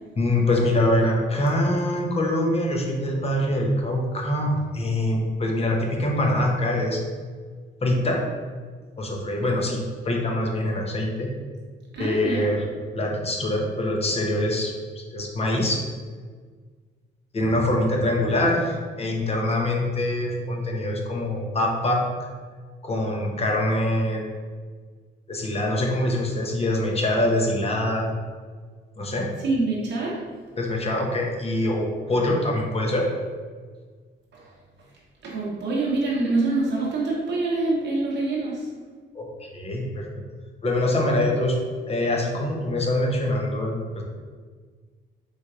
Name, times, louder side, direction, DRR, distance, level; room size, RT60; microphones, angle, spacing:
voice 1, 0.2-7.0 7.8-8.2 9.0-11.4 12.0-12.6 12.9-14.7 15.1-15.8 17.3-22.3 22.8-24.2 25.3-28.2 29.0-29.3 30.6-33.1 39.1-40.1 40.6-41.6 41.9-44.0, left 1 dB, 30° left, 0 dB, 0.8 m, -24 dB
voice 2, 11.9-12.5 29.4-30.2 34.3-34.5 35.2-38.7, right 2 dB, 60° right, -5 dB, 0.9 m, -25 dB
4.1 x 3.1 x 2.4 m, 1.6 s
cardioid pair, 90°, 20 cm